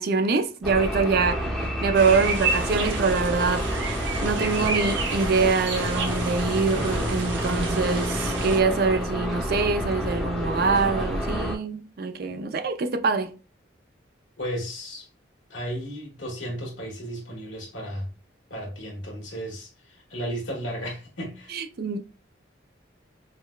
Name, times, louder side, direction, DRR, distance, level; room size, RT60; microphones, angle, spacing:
voice 1, 0.0-3.7 4.2-13.3 21.5-22.0, right 4 dB, 55° right, 0.4 m, -24 dB
sound 1, 0.6-11.6, equal, ahead, 0.8 m, -29 dB
sound 2, 1.9-8.6, right 3 dB, 70° right, 0.8 m, -30 dB
voice 2, 14.4-15.1 15.5-18.1 18.5-21.6, equal, 80° left, 1.4 m, -34 dB
5.0 x 2.1 x 2.2 m
head